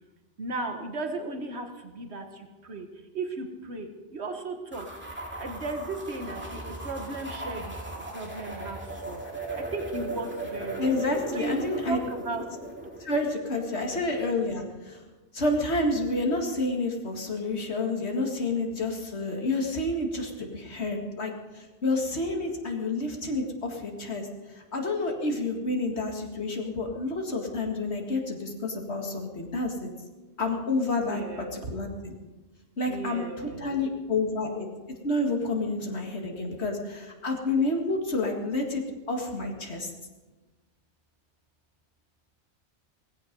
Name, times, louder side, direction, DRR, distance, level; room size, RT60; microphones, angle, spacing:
voice 1, 0.4-2.9 3.1-4.9 5.4-7.8 8.1-8.8 9.1-9.2 9.6-11.0 11.3-12.5 13.8-14.0 31.0-31.7 32.8-33.7, right 2 dB, 75° right, 5 dB, 1.6 m, -36 dB
sound 1, 4.7-13.3, right 2 dB, 10° right, 2.5 m, -37 dB
voice 2, 10.8-12.0 13.0-15.0 15.3-29.9 30.4-32.2 32.8-34.7 35.0-39.9, left 2 dB, 75° left, 1 dB, 2.3 m, -29 dB
17.5 x 15.5 x 5.3 m, 1.2 s
omnidirectional pair, 1.1 m